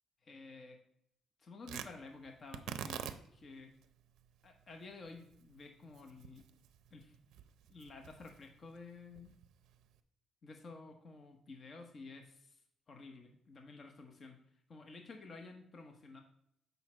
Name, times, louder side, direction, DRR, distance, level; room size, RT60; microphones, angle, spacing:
voice 1, 0.2-0.8 1.4-3.7 4.4-6.4 6.9-7.1 7.7-9.3 10.4-12.6 12.9-14.4 14.7-16.2, left 3 dB, 45° left, 4 dB, 1.1 m, -52 dB
Tearing, 1.6-10.0, right 9 dB, 90° right, 0.5 m, -49 dB
8.0 x 5.4 x 4.4 m, 0.71 s
cardioid pair, 90°, 0 cm